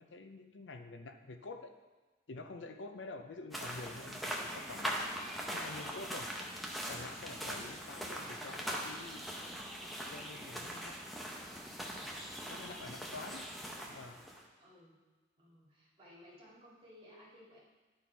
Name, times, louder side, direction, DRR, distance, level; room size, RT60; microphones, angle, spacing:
voice 1, 0.0-1.7 2.3-6.3 6.9-9.2 10.1-11.0 12.5-13.5 13.9-14.2, left 3 dB, 75° left, 7 dB, 0.6 m, -48 dB
sound 1, 3.5-14.4, equal, ahead, 0.7 m, -41 dB
voice 2, 10.5-10.9 14.6-15.0 15.4-17.6, left 1 dB, 30° right, -7 dB, 2.3 m, -59 dB
10.5 x 4.3 x 4.6 m, 1.2 s
head